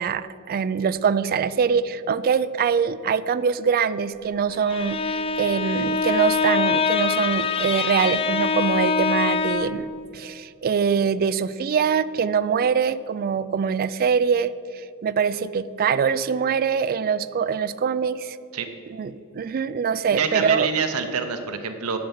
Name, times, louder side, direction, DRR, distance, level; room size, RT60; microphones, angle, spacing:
voice 1, 0.0-18.4 18.9-20.7, right 6 dB, 40° right, 15 dB, 0.3 m, -23 dB
Bowed string instrument, 4.5-9.9, left 5 dB, 25° left, 0.4 m, -24 dB
voice 2, 20.1-22.0, right 6 dB, 70° right, 7 dB, 0.7 m, -26 dB
8.6 x 6.9 x 7.2 m, 2.7 s
head